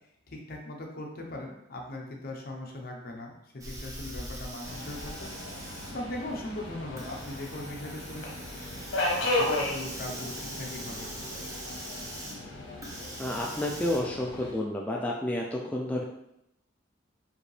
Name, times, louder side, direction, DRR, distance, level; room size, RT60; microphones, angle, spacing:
voice 1, 0.3-8.3 9.2-11.1, left 1 dB, 50° left, 1 dB, 0.8 m, -40 dB
Hiss, 3.6-14.0, right 1 dB, 20° right, 0.8 m, -43 dB
Subway metro underground, 4.6-14.5, left 2 dB, 75° left, 1.0 m, -35 dB
voice 2, 13.2-16.0, left 1 dB, 10° left, -2 dB, 0.3 m, -30 dB
4.9 x 2.7 x 3.2 m, 0.82 s
head